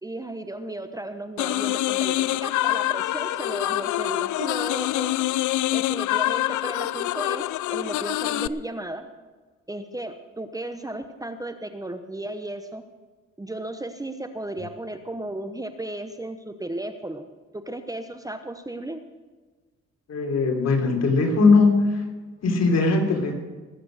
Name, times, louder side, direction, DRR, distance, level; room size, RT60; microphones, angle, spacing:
voice 1, 0.0-5.1 5.7-9.1 9.7-12.8 13.4-17.3 17.5-19.0, right 1 dB, 10° right, 8 dB, 1.0 m, -34 dB
sound 1, 1.4-8.5, left 16 dB, 75° left, 0.5 m, -25 dB
voice 2, 20.1-22.0 22.4-23.3, left 3 dB, 60° left, 2 dB, 3.6 m, -20 dB
20.5 x 8.6 x 6.5 m, 1.3 s
cardioid pair, 90°, 30 cm